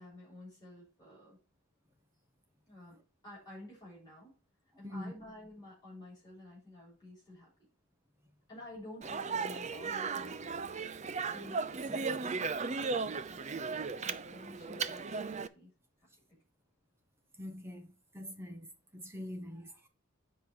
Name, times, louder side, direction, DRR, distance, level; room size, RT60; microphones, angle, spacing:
voice 1, 0.0-1.4 2.7-4.4 4.8-7.7 8.5-10.8 11.3-15.7 16.3-16.4, left 1 dB, 20° left, 6.8 m, -52 dB
Speech, 9.0-15.5, right 4 dB, 35° right, 0.5 m, -36 dB
voice 2, 17.4-19.9, left 1 dB, 10° right, 1.3 m, -44 dB
9.1 x 5.3 x 6.0 m
head